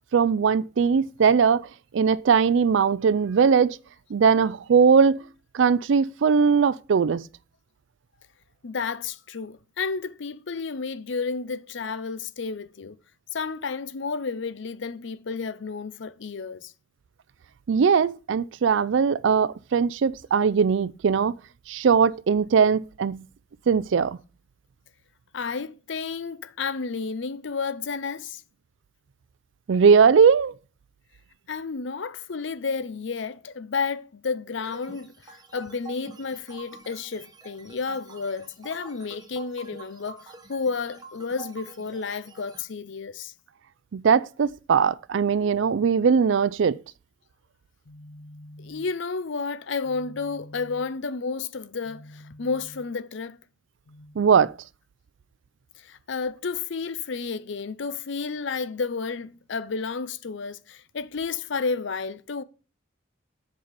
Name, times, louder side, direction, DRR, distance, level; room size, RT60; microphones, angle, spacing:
voice 1, 0.1-1.7 1.9-3.8 4.1-5.2 5.5-7.2 17.7-21.4 21.7-23.2 23.7-24.2 29.7-30.5 43.9-46.8 54.2-54.5, right 6 dB, 65° right, 0.4 m, -20 dB
voice 2, 8.6-13.0 13.3-16.7 25.3-28.4 31.5-43.3 47.9-53.4 53.9-54.1 55.8-62.4, left 4 dB, 65° left, 0.6 m, -31 dB
sound 1, 34.6-42.6, right 4 dB, 20° right, 0.9 m, -47 dB
7.9 x 5.5 x 5.0 m
head